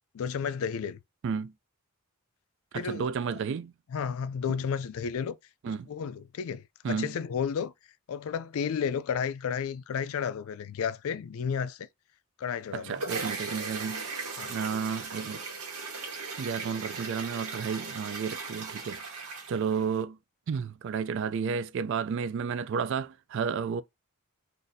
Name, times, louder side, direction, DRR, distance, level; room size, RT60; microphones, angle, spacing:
voice 1, 0.1-1.0 2.8-3.4 3.9-5.4 5.7-7.7 8.1-11.9 12.4-12.9 14.4-14.5, left 7 dB, 70° left, 0.3 m, -32 dB
voice 2, 2.7-3.7 5.6-5.9 6.8-7.2 12.7-14.2 14.5-15.4 16.4-20.2 20.5-23.8, right 6 dB, 55° right, 0.3 m, -32 dB
sound 1, 12.5-20.0, right 4 dB, 90° right, 1.2 m, -38 dB
2.6 x 2.5 x 4.0 m
head